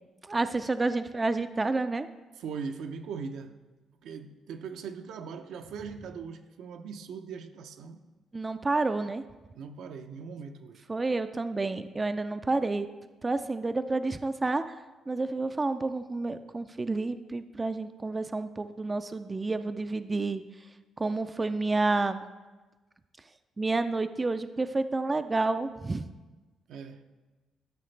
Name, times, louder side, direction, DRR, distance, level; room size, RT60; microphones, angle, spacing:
voice 1, 0.2-2.1 8.3-9.2 10.9-12.9 13.2-14.6 15.1-20.4 21.0-22.2 23.6-26.1, right 3 dB, 25° right, 10 dB, 0.3 m, -29 dB
voice 2, 2.4-3.5 4.0-8.0 9.6-10.8 26.7-27.0, right 5 dB, 80° right, 6 dB, 0.6 m, -40 dB
12.5 x 5.9 x 3.3 m, 1.2 s
cardioid pair, 90°, 0 cm